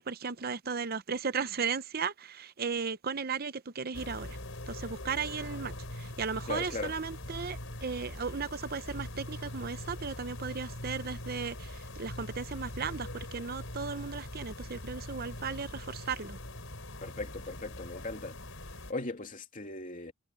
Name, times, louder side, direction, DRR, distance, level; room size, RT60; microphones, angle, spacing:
voice 1, 0.0-4.4 4.7-16.4, right 5 dB, 45° right, 0.7 m, -36 dB
sound 1, 3.9-18.9, left 1 dB, 65° left, 6.9 m, -42 dB
voice 2, 6.5-6.9 17.0-18.4 18.9-20.1, left 2 dB, 40° left, 2.8 m, -38 dB
head